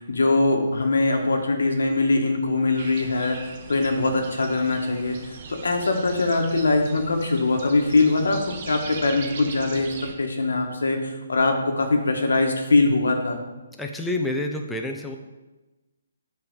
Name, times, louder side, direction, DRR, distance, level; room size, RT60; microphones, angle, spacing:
voice 1, 0.0-9.9 10.2-13.4, left 3 dB, 80° left, 4 dB, 1.4 m, -22 dB
sound 1, 2.8-10.1, right 5 dB, 40° right, 0.9 m, -40 dB
voice 2, 13.8-15.2, left 2 dB, 5° left, 2 dB, 0.5 m, -28 dB
8.4 x 3.3 x 6.6 m, 1.1 s
hypercardioid pair, 150°, 0 cm